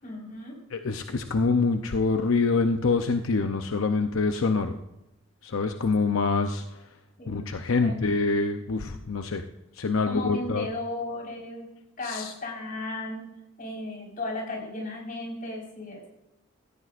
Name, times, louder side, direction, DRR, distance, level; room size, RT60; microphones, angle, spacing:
voice 1, 0.0-0.6 7.2-7.6 7.8-8.0 10.0-11.7 12.0-16.1, left 2 dB, 40° left, -1 dB, 4.7 m, -35 dB
voice 2, 0.7-4.8 5.4-6.6 7.3-9.4 9.8-10.7 12.0-12.3, left 4 dB, 80° left, 6 dB, 0.7 m, -25 dB
17.0 x 14.0 x 2.5 m, 0.90 s
head